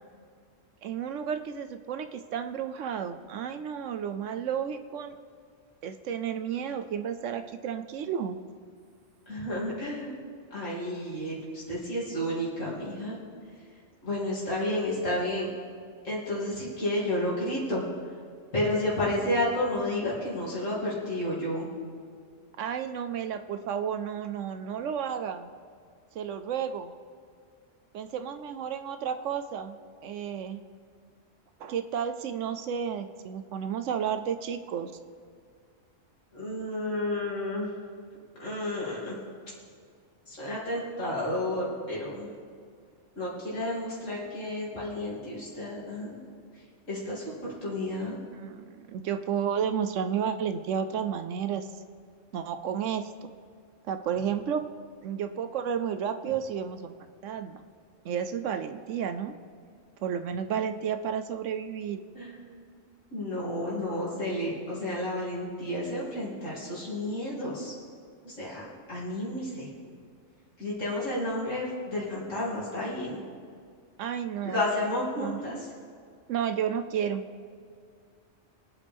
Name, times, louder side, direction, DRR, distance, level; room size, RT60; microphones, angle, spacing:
voice 1, 0.8-5.1 5.8-8.4 22.6-25.5 26.1-26.9 27.9-29.8 30.0-30.6 31.6-34.9 48.3-51.7 52.3-53.1 53.9-54.6 55.0-56.9 57.2-57.6 58.0-59.3 60.0-62.0 74.0-74.6 75.1-75.4 76.3-77.2, right 8 dB, 80° right, 9 dB, 0.9 m, -32 dB
voice 2, 9.3-10.1 10.5-13.2 14.0-15.5 16.0-17.8 18.5-21.6 36.3-37.7 38.4-39.1 40.3-42.3 43.2-46.2 46.9-48.2 62.1-62.7 63.1-67.7 68.2-69.7 70.6-73.2 74.4-75.7, left 1 dB, 80° left, -8 dB, 3.1 m, -31 dB
23.0 x 8.4 x 3.5 m, 2.1 s
omnidirectional pair, 1.3 m